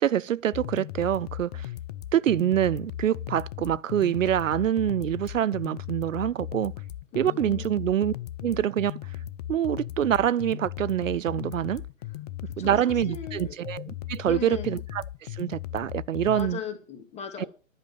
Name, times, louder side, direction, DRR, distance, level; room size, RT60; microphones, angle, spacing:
voice 1, 0.0-1.7 2.1-6.7 7.1-8.1 8.4-9.0 9.5-11.8 12.6-16.6 17.4-17.5, right 10 dB, 75° right, 0.5 m, -26 dB
sound 1, 0.5-16.5, left 12 dB, 30° left, 0.5 m, -37 dB
voice 2, 7.1-7.8 12.4-13.6 14.2-14.8 16.3-17.5, left 8 dB, 15° left, 2.2 m, -38 dB
11.0 x 6.2 x 8.9 m
figure-of-eight pair, 120°, 39 cm